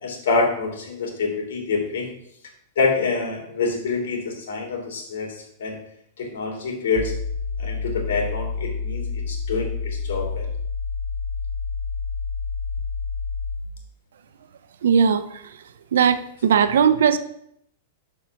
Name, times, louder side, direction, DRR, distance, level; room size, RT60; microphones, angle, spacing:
voice 1, 0.0-2.1 2.8-5.8 6.2-7.1 7.6-10.5, left 4 dB, 75° left, 1 dB, 2.4 m, -26 dB
sound 1, 7.0-13.8, left 4 dB, ahead, 1.4 m, -29 dB
voice 2, 14.8-15.2 15.9-17.2, right 7 dB, 85° right, 12 dB, 0.6 m, -18 dB
5.7 x 4.7 x 6.3 m, 0.72 s
hypercardioid pair, 145°, 0 cm